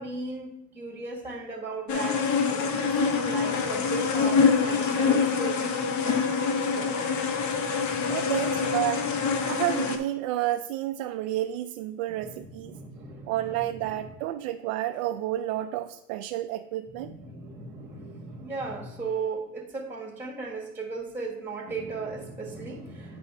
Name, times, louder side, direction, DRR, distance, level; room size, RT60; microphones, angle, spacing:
voice 1, 0.0-6.3 6.7-6.9 7.3-8.6 12.1-14.1 16.9-23.2, right 3 dB, 5° right, -1 dB, 1.4 m, -37 dB
sound 1, 1.9-10.0, left 5 dB, 35° left, 1.0 m, -25 dB
voice 2, 8.1-9.1 9.5-12.8 13.3-17.1, right 14 dB, 60° right, 6 dB, 0.6 m, -30 dB
9.0 x 5.3 x 3.4 m, 0.81 s
supercardioid pair, 110°, 48 cm